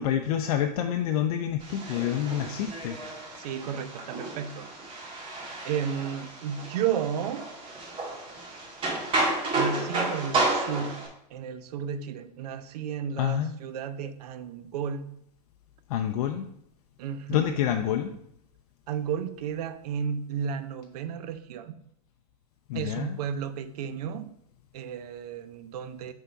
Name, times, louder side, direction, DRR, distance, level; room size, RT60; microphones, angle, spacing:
voice 1, 0.0-3.0 13.2-13.5 15.9-16.5 17.3-18.1 22.7-23.1, left 10 dB, 65° left, 5 dB, 0.5 m, -27 dB
sound 1, 1.6-11.1, right 2 dB, 25° right, 1.6 m, -32 dB
voice 2, 3.4-4.7 5.6-7.5 9.5-15.1 17.0-17.5 18.9-21.8 22.7-24.3 24.7-26.1, right 8 dB, 70° right, 11 dB, 0.6 m, -33 dB
5.0 x 3.6 x 5.6 m, 0.73 s
supercardioid pair, 135°, 21 cm